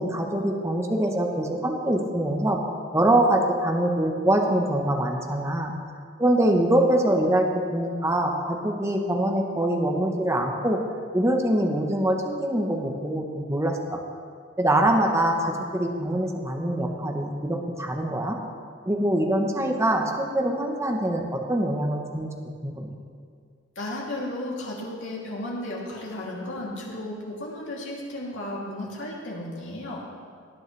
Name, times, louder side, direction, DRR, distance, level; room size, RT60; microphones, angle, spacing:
voice 1, 0.0-2.6 2.9-5.7 6.2-10.8 11.1-14.0 14.6-18.4 18.9-22.3 22.6-22.9, right 1 dB, 15° right, 1 dB, 1.0 m, -24 dB
voice 2, 23.8-30.0, left 1 dB, 75° left, -4 dB, 2.9 m, -34 dB
18.5 x 9.5 x 3.3 m, 2.1 s
head